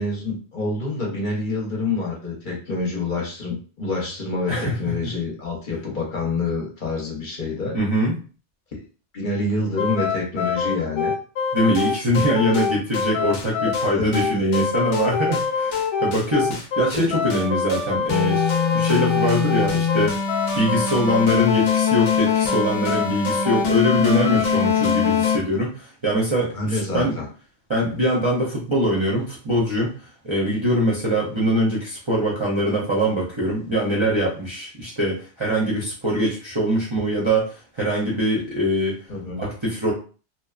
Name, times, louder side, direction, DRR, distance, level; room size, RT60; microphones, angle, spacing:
voice 1, 0.0-7.8 8.7-8.8 9.1-11.1 14.0-14.6 16.9-17.2 26.5-27.3 34.0-34.3 39.1-39.4, left 3 dB, 50° left, -2 dB, 0.8 m, -27 dB
voice 2, 7.7-8.2 11.5-27.2 27.7-39.0 39.4-39.9, equal, 35° right, -6 dB, 0.5 m, -23 dB
sound 1, 9.8-25.4, left 6 dB, 80° left, 0.9 m, -22 dB
2.8 x 2.1 x 2.4 m, 0.37 s
omnidirectional pair, 1.2 m